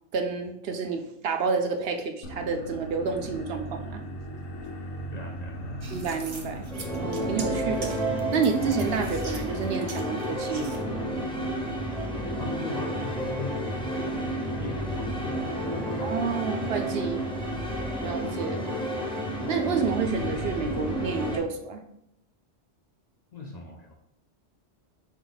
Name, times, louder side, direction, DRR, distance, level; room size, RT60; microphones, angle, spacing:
voice 1, 0.1-4.0 5.9-6.7 7.0-8.0 8.3-10.8 16.0-17.2 18.0-18.6 19.5-21.8, right 5 dB, 65° right, 5 dB, 0.8 m, -29 dB
sound 1, 2.2-21.4, equal, 85° left, 1.0 m, -39 dB
voice 2, 5.1-5.9 12.4-14.3 14.6-16.3 23.3-24.0, left 3 dB, 50° left, 0 dB, 0.5 m, -40 dB
sound 2, 5.8-10.8, right 4 dB, 45° right, 0.4 m, -43 dB
sound 3, 6.7-21.4, right 1 dB, 5° left, 0.6 m, -31 dB
4.5 x 2.7 x 3.9 m, 0.78 s
omnidirectional pair, 1.2 m